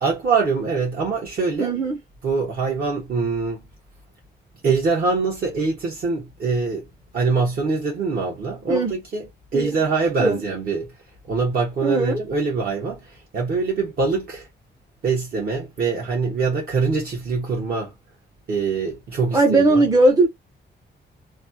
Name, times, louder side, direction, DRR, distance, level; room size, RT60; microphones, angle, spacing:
voice 1, 0.0-1.7 2.2-3.6 4.6-6.9 7.1-9.3 9.5-10.9 11.3-14.5 15.0-17.9 18.5-19.8, right 4 dB, 55° right, 1.2 m, -24 dB
voice 2, 1.6-2.0 8.7-9.0 9.5-9.7 10.2-10.4 11.8-12.2 19.3-20.3, right 2 dB, 20° right, 0.5 m, -18 dB
3.2 x 2.3 x 2.7 m
wide cardioid pair, 175°, 19 cm